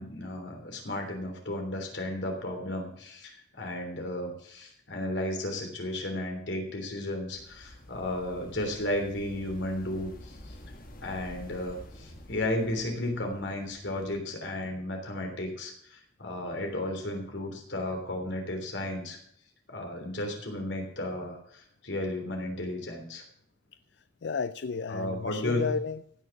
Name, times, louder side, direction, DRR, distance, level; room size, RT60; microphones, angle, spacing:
voice 1, 0.0-10.6 11.0-19.2 19.7-23.2 24.9-25.7, left 1 dB, 85° left, 3 dB, 3.3 m, -34 dB
sound 1, 7.3-14.2, left 1 dB, 50° left, 1.6 m, -49 dB
voice 2, 24.2-26.2, left 5 dB, 65° left, 14 dB, 0.4 m, -32 dB
16.0 x 6.5 x 6.0 m, 0.69 s
head